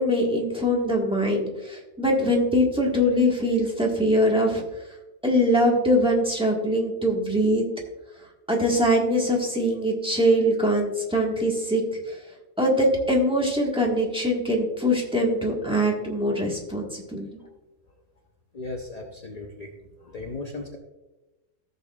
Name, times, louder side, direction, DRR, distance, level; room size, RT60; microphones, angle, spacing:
voice 1, 0.0-4.6 5.2-7.6 8.5-11.8 12.6-17.3, equal, 5° right, -1 dB, 1.3 m, -22 dB
voice 2, 18.5-19.7 20.0-20.8, left 2 dB, 40° left, 2 dB, 0.5 m, -36 dB
15.0 x 6.8 x 2.4 m, 1.1 s
omnidirectional pair, 1.6 m